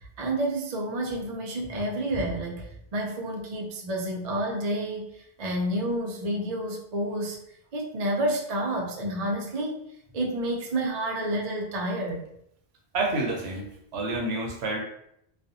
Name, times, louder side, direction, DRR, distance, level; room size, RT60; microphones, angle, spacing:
voice 1, 0.2-2.7 2.9-5.1 5.4-7.4 7.7-9.8 10.1-12.2, right 1 dB, 55° right, 0 dB, 0.5 m, -29 dB
voice 2, 12.9-13.7 13.9-14.8, right 2 dB, 75° right, 0 dB, 0.9 m, -28 dB
2.4 x 2.4 x 2.6 m, 0.75 s
omnidirectional pair, 1.1 m